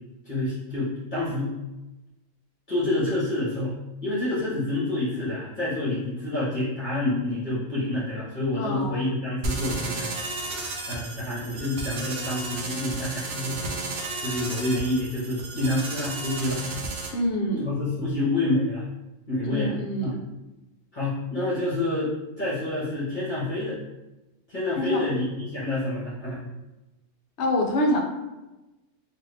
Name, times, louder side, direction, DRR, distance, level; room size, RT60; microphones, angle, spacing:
voice 1, 0.2-1.6 2.7-3.8 4.0-10.1 10.9-13.7 14.2-16.6 17.6-18.8 19.3-20.1 20.9-23.8 24.5-26.4, left 1 dB, 40° left, -9 dB, 0.9 m, -28 dB
voice 2, 8.6-9.0 17.1-17.7 19.4-20.2 24.8-25.0 27.4-28.0, left 1 dB, 65° left, 0 dB, 0.7 m, -26 dB
sound 1, 9.4-17.1, right 2 dB, 65° right, 0.6 m, -33 dB
2.6 x 2.5 x 3.2 m, 1.0 s
omnidirectional pair, 1.6 m